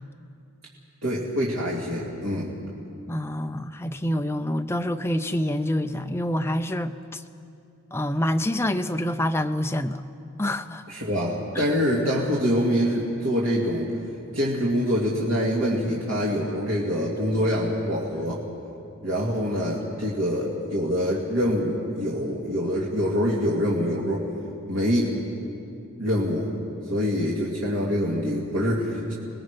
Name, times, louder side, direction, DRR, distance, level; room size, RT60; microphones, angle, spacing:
voice 1, 1.0-2.5 10.9-13.9 14.3-18.4 19.0-24.3 24.7-25.1 26.0-26.5 26.9-29.1, equal, 60° right, -5 dB, 2.5 m, -25 dB
voice 2, 3.1-7.2 7.9-10.0 10.4-10.9 11.6-11.7, left 1 dB, 10° left, 7 dB, 0.5 m, -27 dB
26.5 x 20.0 x 5.2 m, 2.6 s
head